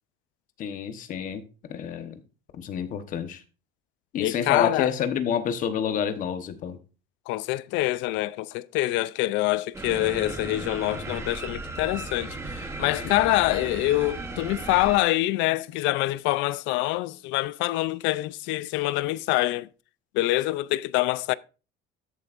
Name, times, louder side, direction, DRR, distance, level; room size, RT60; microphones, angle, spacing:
voice 1, 0.6-1.4 1.7-2.2 2.5-3.4 4.1-6.8, left 8 dB, 40° left, 1.1 m, -28 dB
voice 2, 4.2-4.9 7.3-19.7 20.1-21.3, left 17 dB, 60° left, 0.4 m, -25 dB
sound 1, 9.7-15.0, right 2 dB, 10° right, 1.0 m, -36 dB
13.5 x 7.9 x 2.5 m
cardioid pair, 170°, 21 cm